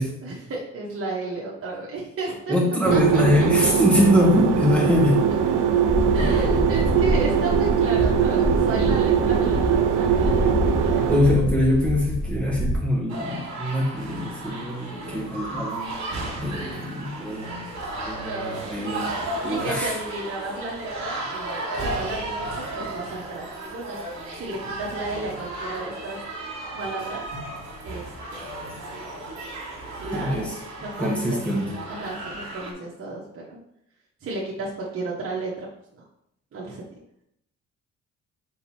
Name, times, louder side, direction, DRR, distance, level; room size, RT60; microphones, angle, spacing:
voice 1, 0.2-2.5 2.9-3.2 6.1-11.3 18.2-18.9 19.5-24.0 24.4-26.2 26.7-27.2 27.8-28.7 30.0-30.5 30.8-31.4 31.9-33.6 34.2-35.7 36.5-36.8, right 3 dB, 45° right, -4 dB, 1.3 m, -33 dB
voice 2, 2.5-5.3 11.0-16.1 16.4-17.8 18.0-19.2 19.4-20.0 30.1-30.6 31.0-31.7, left 1 dB, 5° left, -3 dB, 2.1 m, -23 dB
sound 1, 2.8-11.2, right 8 dB, 90° right, 0.7 m, -21 dB
sound 2, 5.8-12.8, equal, 60° left, 2.2 m, -26 dB
sound 3, 13.1-32.7, right 2 dB, 65° right, 2.2 m, -34 dB
5.4 x 4.3 x 4.4 m, 0.77 s
cardioid pair, 90°, 30 cm